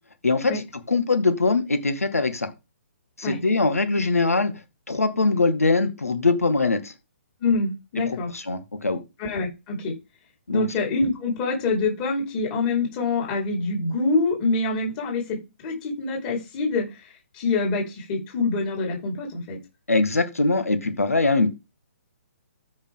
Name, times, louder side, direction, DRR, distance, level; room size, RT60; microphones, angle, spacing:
voice 1, 0.9-2.5 3.2-4.5 4.9-6.9 8.1-9.0 10.5-10.7 19.9-21.5, left 3 dB, 85° left, 11 dB, 1.9 m, -22 dB
voice 2, 7.4-8.3 9.2-9.9 10.5-19.6, left 3 dB, 35° left, -2 dB, 5.0 m, -26 dB
13.5 x 5.5 x 3.9 m, 0.26 s
figure-of-eight pair, 135°, 8 cm